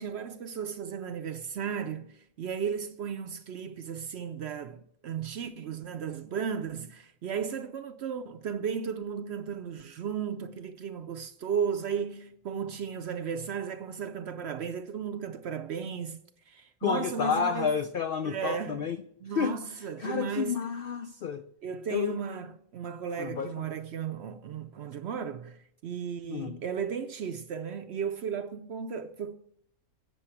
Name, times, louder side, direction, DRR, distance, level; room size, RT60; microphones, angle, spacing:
voice 1, 0.0-17.8 18.2-18.9 19.2-20.6 21.6-29.4, right 7 dB, 60° right, 0.7 m, -35 dB
voice 2, 16.8-19.0 19.3-19.6 20.0-21.4 21.9-22.2 23.2-23.5 26.3-26.6, left 6 dB, 85° left, 0.5 m, -30 dB
8.2 x 6.6 x 7.2 m
omnidirectional pair, 1.5 m